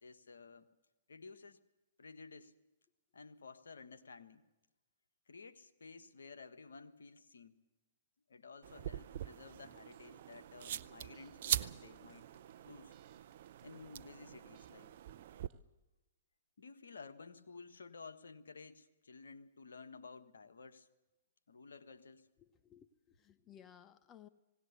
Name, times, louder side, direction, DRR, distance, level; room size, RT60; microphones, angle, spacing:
voice 1, 0.0-0.7 1.1-1.6 2.0-2.6 3.1-4.4 5.3-7.6 8.3-12.9 13.6-15.0 16.6-20.9 21.5-22.3, left 4 dB, 85° left, 8 dB, 1.4 m, -54 dB
sound 1, 8.6-15.5, right 11 dB, 60° right, 0.6 m, -43 dB
sound 2, 9.6-15.6, right 9 dB, 40° right, 2.4 m, -67 dB
voice 2, 22.4-24.3, left 9 dB, 25° left, 12 dB, 1.0 m, -59 dB
19.0 x 18.0 x 8.1 m, 1.1 s
hypercardioid pair, 125°, 0 cm